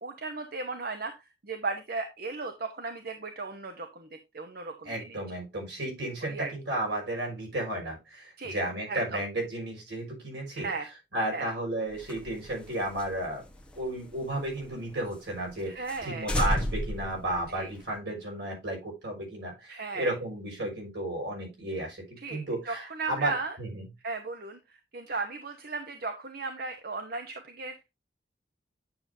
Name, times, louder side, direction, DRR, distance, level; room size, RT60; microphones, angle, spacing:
voice 1, 0.0-5.2 6.2-6.5 8.4-8.5 8.9-9.2 10.5-10.9 11.3-11.5 15.7-16.3 17.5-17.7 19.7-20.1 22.2-23.6 24.0-27.8, right 3 dB, 60° right, 6 dB, 1.0 m, -36 dB
voice 2, 4.8-10.7 11.1-13.4 13.8-23.3 23.6-23.8, right 1 dB, 80° right, 0 dB, 5.8 m, -33 dB
sound 1, 11.9-14.8 15.1-15.2 15.5-15.6 15.9-16.0 16.3-18.0, left 1 dB, 5° left, 1.2 m, -33 dB
9.7 x 6.9 x 2.7 m, 0.23 s
head